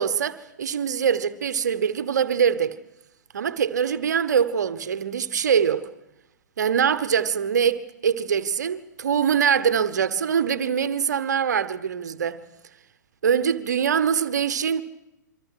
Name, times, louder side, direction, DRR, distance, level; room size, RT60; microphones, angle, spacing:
voice 1, 0.0-2.8 3.3-5.9 6.6-12.4 13.2-14.8, right 7 dB, 65° right, 1.1 m, -23 dB
26.5 x 24.5 x 4.9 m
figure-of-eight pair, 110°, 10 cm